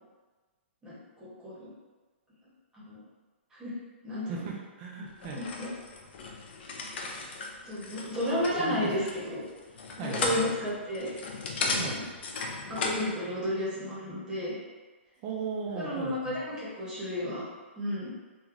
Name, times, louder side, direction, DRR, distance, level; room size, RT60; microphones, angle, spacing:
voice 1, 0.8-1.7 2.7-3.0 3.6-3.7 4.0-4.5 5.0-5.1 5.3-5.7 7.6-9.4 10.0-11.1 11.6-12.0 12.7-14.5 15.7-17.4 17.8-18.1, left 1 dB, 10° right, -9 dB, 0.9 m, -32 dB
voice 2, 4.3-5.4 8.6-8.9 10.0-10.3 11.8-12.0 15.2-16.4, right 4 dB, 30° right, -2 dB, 0.4 m, -37 dB
sound 1, 5.2-13.1, left 3 dB, 60° left, 0.5 m, -35 dB
3.1 x 2.2 x 2.5 m, 1.3 s
hypercardioid pair, 145°, 7 cm